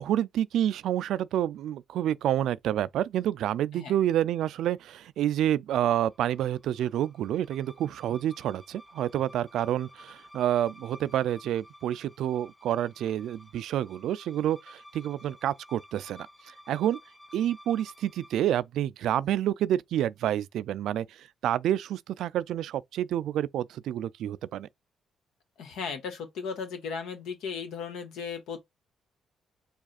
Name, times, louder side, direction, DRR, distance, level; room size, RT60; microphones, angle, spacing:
voice 1, 0.0-17.0 17.3-24.7, right 11 dB, 80° right, 0.3 m, -28 dB
sound 1, 5.9-18.6, left 1 dB, 15° left, 1.8 m, -53 dB
voice 2, 25.6-28.6, left 6 dB, 85° left, 1.3 m, -36 dB
4.8 x 2.4 x 4.2 m
cardioid pair, 90°, 0 cm